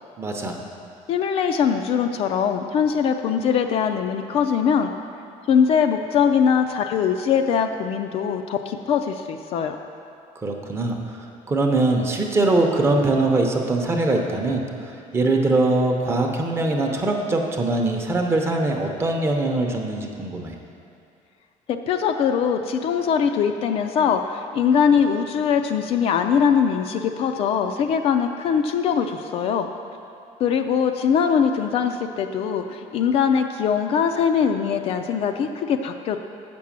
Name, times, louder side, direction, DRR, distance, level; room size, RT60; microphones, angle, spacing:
voice 1, 0.2-0.6 10.4-11.2 11.5-20.6, right 2 dB, 20° right, 2 dB, 0.7 m, -22 dB
voice 2, 1.1-4.9 5.5-9.8 21.7-29.7 30.4-36.2, left 7 dB, 45° left, 6 dB, 0.4 m, -22 dB
7.5 x 6.1 x 7.3 m, 2.6 s
cardioid pair, 175°, 14 cm